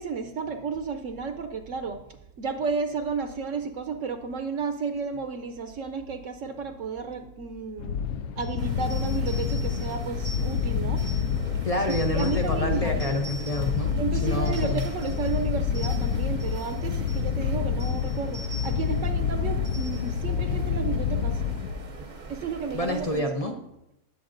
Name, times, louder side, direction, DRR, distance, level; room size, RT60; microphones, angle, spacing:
voice 1, 0.0-8.0 8.4-11.1 12.1-13.0 13.9-21.4 22.3-23.6, right 5 dB, 65° right, 8 dB, 1.0 m, -32 dB
sound 1, 7.8-22.1, left 7 dB, 80° left, 1.0 m, -28 dB
sound 2, 8.6-23.2, right 3 dB, 40° right, 0.8 m, -42 dB
sound 3, 8.8-11.4 11.8-12.5 13.0-13.8 14.2-15.4 15.7-16.8 17.1-17.3 17.8-19.0 19.6-20.2, right 1 dB, 65° left, 2.3 m, -45 dB
voice 2, 11.6-13.9 14.2-14.8 22.7-23.5, left 1 dB, 40° left, 4 dB, 0.5 m, -28 dB
18.5 x 7.6 x 2.6 m, 0.87 s
omnidirectional pair, 1.5 m